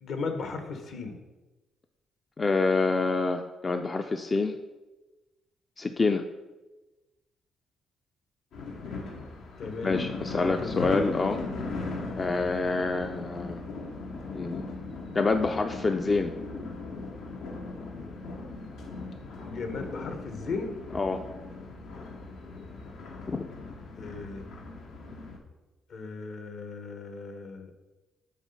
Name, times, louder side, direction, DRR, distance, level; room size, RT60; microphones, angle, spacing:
voice 1, 0.0-1.1 9.6-10.0 10.3-11.1 19.4-20.8 24.0-24.4 25.9-27.7, left 4 dB, 65° left, 5 dB, 1.2 m, -36 dB
voice 2, 2.4-4.6 5.8-6.3 9.8-11.4 12.2-13.6 14.3-14.6 15.1-16.3 20.9-21.2 23.3-23.4, left 3 dB, 30° left, 6 dB, 0.4 m, -27 dB
sound 1, 8.5-25.4, left 3 dB, 85° left, 1.1 m, -38 dB
7.2 x 3.9 x 5.7 m, 1.1 s
cardioid pair, 90°, 0 cm